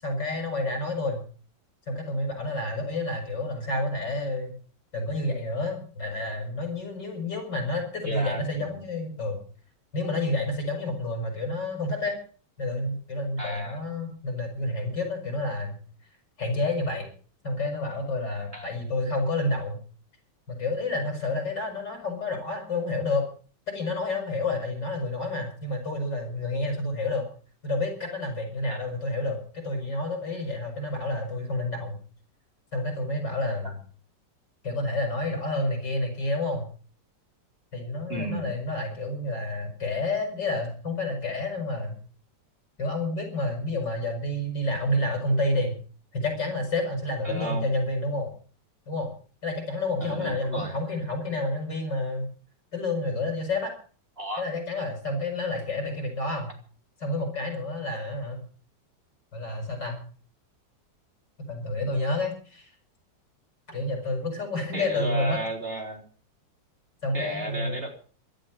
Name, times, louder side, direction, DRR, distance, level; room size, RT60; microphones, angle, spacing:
voice 1, 0.0-1.2 1.9-4.5 4.9-9.4 9.9-12.2 12.6-15.8 16.4-17.1 17.4-19.8 20.5-23.3 23.7-27.3 27.6-32.0 32.7-33.8 34.6-36.7 37.7-42.0 42.8-45.7 46.1-48.3 48.9-49.1 49.4-52.3 52.7-53.7 54.4-56.5 57.0-58.4 59.3-60.0 61.5-62.7 63.7-65.4 67.0-67.8, left 2 dB, 70° left, 4 dB, 7.0 m, -29 dB
voice 2, 8.1-8.8 13.4-13.8 18.5-18.7 28.7-28.8 33.6-33.7 38.1-38.6 47.2-47.7 50.0-50.7 54.2-54.4 64.7-66.0 67.1-67.9, right 1 dB, 30° right, 2 dB, 4.1 m, -34 dB
16.5 x 13.0 x 6.5 m, 0.42 s
omnidirectional pair, 1.9 m